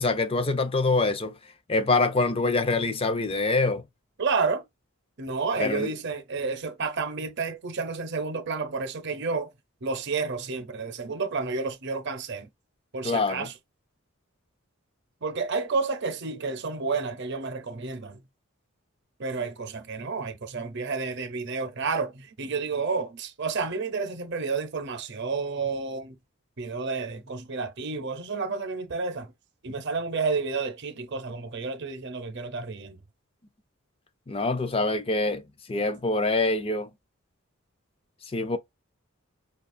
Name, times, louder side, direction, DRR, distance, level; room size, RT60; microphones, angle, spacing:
voice 1, 0.0-1.4 1.7-3.8 5.6-5.9 13.0-13.5 34.3-35.4 35.7-36.9 38.3-38.6, left 3 dB, 25° left, 0.5 m, -25 dB
voice 2, 4.2-4.6 5.2-9.5 9.8-12.5 12.9-13.5 15.2-18.2 19.2-26.2 26.6-29.3 29.6-33.0, right 4 dB, 55° right, 0.8 m, -30 dB
5.5 x 2.4 x 2.6 m
head